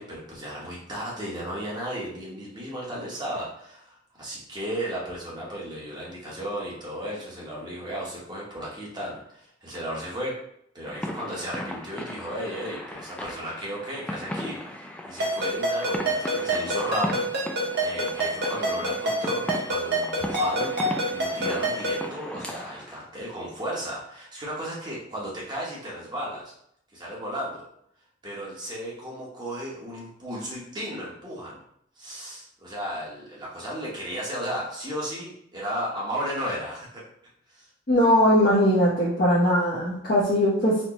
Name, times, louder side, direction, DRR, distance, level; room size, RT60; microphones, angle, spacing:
voice 1, 0.0-10.3 10.7-17.2 17.8-20.8 21.1-26.5 26.9-27.7 28.2-31.6 32.0-37.0 37.5-37.7, equal, 25° right, -5 dB, 1.0 m, -34 dB
sound 1, 10.8-23.0, left 1 dB, 5° left, 0.3 m, -36 dB
Ringtone, 15.2-22.1, right 1 dB, 60° right, 1.0 m, -27 dB
voice 2, 37.9-40.8, equal, 50° left, -8 dB, 0.8 m, -20 dB
4.3 x 2.2 x 2.9 m, 0.70 s
head